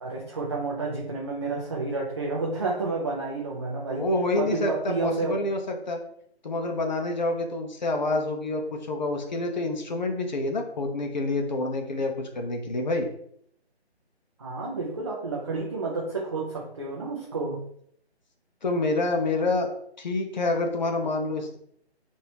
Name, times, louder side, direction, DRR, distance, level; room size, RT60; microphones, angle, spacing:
voice 1, 0.0-4.0 4.3-5.5 14.4-17.6, right 3 dB, 25° right, -4 dB, 0.5 m, -30 dB
voice 2, 3.9-6.0 6.4-13.1 18.6-19.7 20.0-21.6, left 2 dB, 45° left, 3 dB, 0.7 m, -27 dB
5.1 x 2.7 x 2.9 m, 0.68 s
figure-of-eight pair, 155°, 33 cm